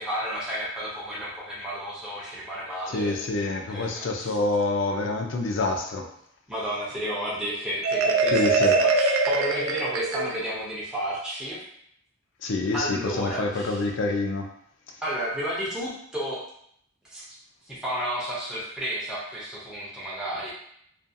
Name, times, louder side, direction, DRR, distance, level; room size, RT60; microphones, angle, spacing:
voice 1, 0.0-3.3 3.7-4.4 6.5-11.6 12.7-13.8 15.0-16.5 17.1-17.3 17.7-20.5, equal, 5° right, -8 dB, 0.5 m, -32 dB
voice 2, 2.9-6.1 8.3-8.8 12.4-14.5, left 2 dB, 60° left, 2 dB, 0.4 m, -27 dB
Marimba xylophone, 7.8-10.6, right 3 dB, 80° right, 0.3 m, -23 dB
2.5 x 2.3 x 2.6 m, 0.69 s
head